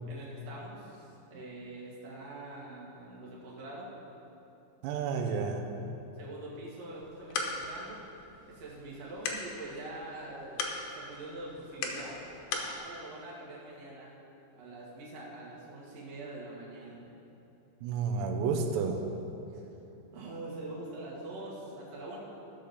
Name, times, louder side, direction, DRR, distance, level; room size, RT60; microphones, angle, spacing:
voice 1, 0.1-3.9 6.1-8.0 8.5-10.6 10.9-12.2 12.5-14.2 14.5-17.0 19.5-19.7 20.1-22.2, right 2 dB, 45° right, -6 dB, 2.6 m, -44 dB
voice 2, 4.8-5.6 17.8-19.0, right 5 dB, 90° right, 3 dB, 3.0 m, -30 dB
sound 1, 6.9-12.8, left 4 dB, 75° left, 2.5 m, -39 dB
14.5 x 5.4 x 6.7 m, 2.9 s
omnidirectional pair, 4.9 m